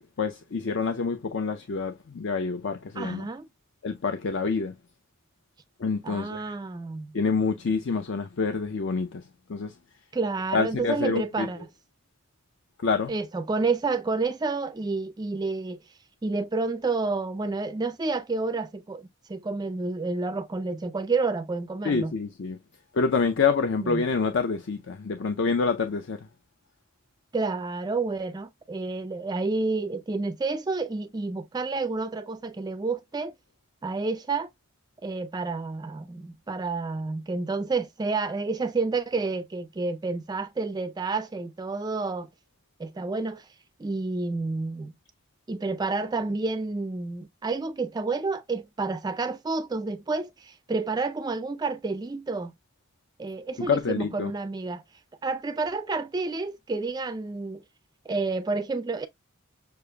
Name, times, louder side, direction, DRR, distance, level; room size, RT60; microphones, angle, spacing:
voice 1, 0.0-3.3 3.8-4.7 5.8-6.5 7.1-9.7 10.5-11.5 12.8-13.1 21.8-22.6 22.9-26.2 53.6-54.3, left 4 dB, 60° left, 0.5 m, -27 dB
voice 2, 3.0-3.5 6.0-7.2 10.1-11.6 13.1-15.8 16.2-22.1 23.8-24.0 27.3-33.3 33.8-34.5 35.0-42.3 42.8-43.5 43.8-44.9 45.5-52.5 53.2-54.8 55.2-57.6 58.1-59.1, right 3 dB, 20° right, 0.3 m, -29 dB
6.7 x 2.5 x 2.2 m
head